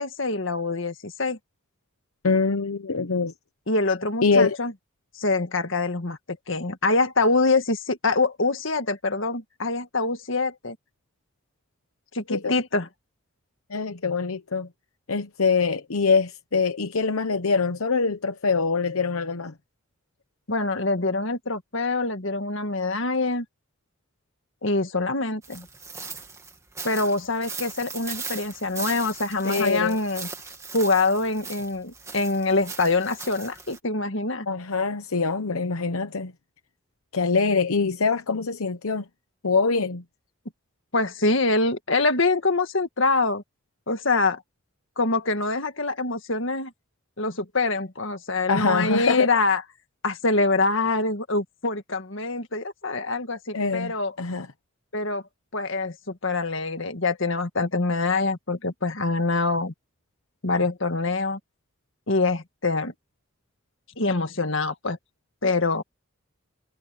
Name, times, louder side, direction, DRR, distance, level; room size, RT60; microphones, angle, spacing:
voice 1, 0.0-1.4 3.7-4.7 5.2-10.8 12.1-12.9 20.5-23.5 24.6-25.7 26.8-30.3 30.7-34.5 40.9-43.4 43.9-44.4 45.0-46.7 47.2-49.6 50.0-54.1 54.9-55.2 55.5-59.7 60.4-61.4 62.1-62.9 64.0-65.0 65.4-65.8, left 3 dB, 60° left, 1.9 m, -25 dB
voice 2, 2.2-3.3 4.2-4.6 12.3-12.5 13.7-14.7 15.1-19.5 29.4-30.0 34.5-36.3 37.1-39.0 39.4-40.0 48.5-49.3 53.5-53.9 54.2-54.5, left 4 dB, 80° left, 1.0 m, -24 dB
sound 1, 25.4-33.8, right 4 dB, 15° right, 2.1 m, -39 dB
head